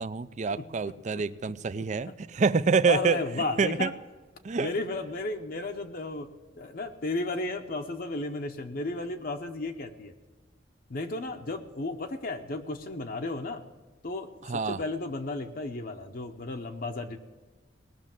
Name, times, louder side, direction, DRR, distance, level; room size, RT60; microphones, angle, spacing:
voice 1, 0.0-3.9 4.4-4.7 14.4-14.8, right 5 dB, 40° right, 15 dB, 0.4 m, -27 dB
voice 2, 0.5-1.2 2.0-2.1 2.8-3.9 4.6-6.3 6.6-10.1 10.9-13.6 14.0-17.2, left 2 dB, 50° left, 5 dB, 0.8 m, -34 dB
19.0 x 6.3 x 7.5 m, 1.3 s
head